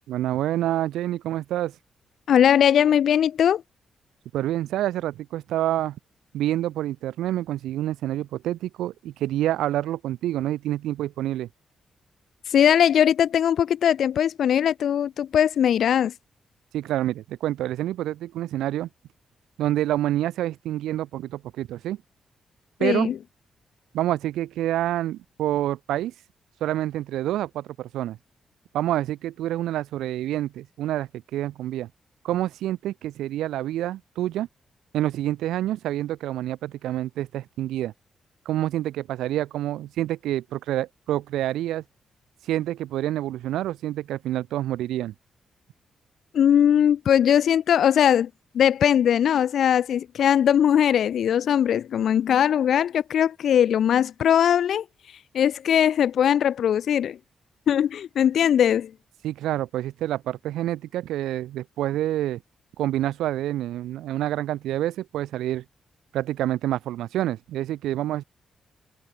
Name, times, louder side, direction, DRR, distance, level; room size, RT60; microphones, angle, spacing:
voice 1, 0.1-1.8 4.3-6.0 6.3-11.5 16.7-18.9 19.6-22.0 22.8-23.1 23.9-26.1 26.6-28.2 28.7-31.9 32.2-34.5 34.9-37.9 38.4-41.8 42.4-45.1 59.2-62.4 62.8-65.6 66.1-68.2, right 13 dB, 85° right, 0.9 m, -27 dB
voice 2, 2.3-3.6 12.5-16.1 22.8-23.1 46.3-48.3 48.5-57.2 57.7-58.9, left 9 dB, 70° left, 0.6 m, -20 dB
supercardioid pair, 50°, 0 cm